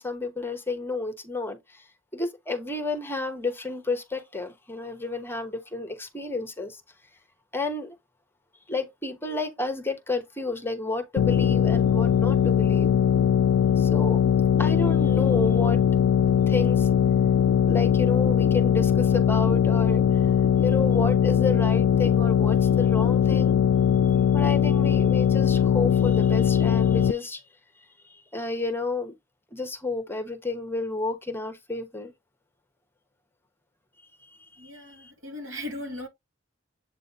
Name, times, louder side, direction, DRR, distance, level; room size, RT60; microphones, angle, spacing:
voice 1, 0.0-1.8 2.1-6.8 7.5-7.9 8.7-12.9 13.8-14.2 14.6-15.8 16.5-16.9 17.6-20.2 20.6-23.6 24.3-27.4 28.1-29.1 29.5-32.1 34.6-34.7 35.0-35.1, left 3 dB, 10° left, 1.2 m, -31 dB
sound 1, 11.2-27.1, left 8 dB, 75° left, 0.3 m, -21 dB
voice 2, 34.6-36.1, left 1 dB, 75° right, 3.4 m, -37 dB
8.1 x 3.1 x 4.0 m
head